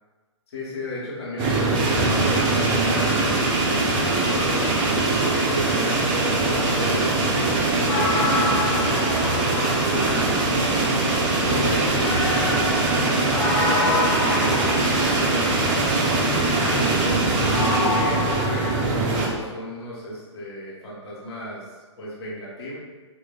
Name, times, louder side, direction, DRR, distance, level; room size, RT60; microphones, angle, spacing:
voice 1, 0.5-9.4 10.0-10.4 11.2-17.1 17.7-22.8, left 1 dB, 55° left, -6 dB, 1.2 m, -34 dB
sound 1, 1.4-19.3, right 2 dB, 30° right, 0.8 m, -22 dB
sound 2, 7.9-10.7 12.0-15.8 17.5-18.8, left 3 dB, 40° left, 0.6 m, -28 dB
4.4 x 2.4 x 2.4 m, 1.3 s
hypercardioid pair, 120°, 16 cm